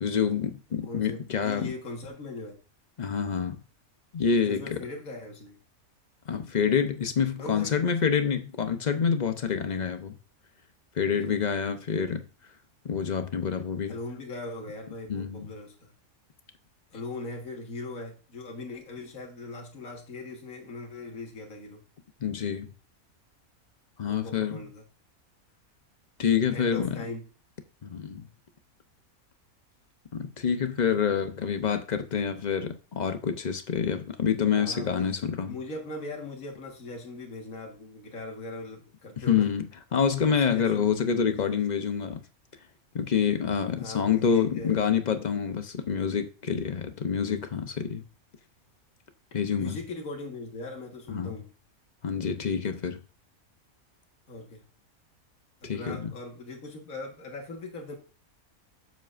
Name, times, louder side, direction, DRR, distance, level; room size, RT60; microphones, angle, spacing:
voice 1, 0.0-1.7 3.0-3.6 4.1-4.8 6.3-10.1 10.9-12.3 12.8-14.0 15.1-15.5 22.2-22.7 24.0-24.6 26.2-27.0 27.8-28.2 30.1-35.6 39.2-42.2 42.9-48.0 49.3-49.8 51.1-51.4 52.0-53.0 55.6-56.1, left 7 dB, 45° left, 0.6 m, -27 dB
voice 2, 0.8-2.6 4.5-5.6 7.4-7.7 11.3-11.4 13.9-15.9 16.9-21.8 24.0-24.8 26.5-27.2 31.4-31.5 34.5-39.5 40.3-41.4 43.8-44.8 49.6-51.5 54.3-54.6 55.6-58.0, left 2 dB, 70° left, 1.9 m, -40 dB
7.9 x 7.4 x 2.5 m
omnidirectional pair, 1.5 m